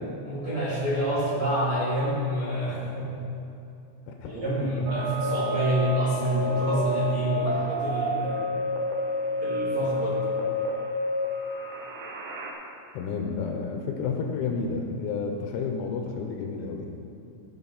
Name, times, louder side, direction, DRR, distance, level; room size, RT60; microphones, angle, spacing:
voice 1, 0.2-3.1 4.2-8.6 9.4-10.2, right 1 dB, 40° right, -8 dB, 2.1 m, -27 dB
sound 1, 4.9-12.5, left 1 dB, 70° right, 2.7 m, -29 dB
voice 2, 12.9-16.9, left 5 dB, 85° left, 2 dB, 2.9 m, -31 dB
17.5 x 6.0 x 4.0 m, 2.8 s
omnidirectional pair, 5.8 m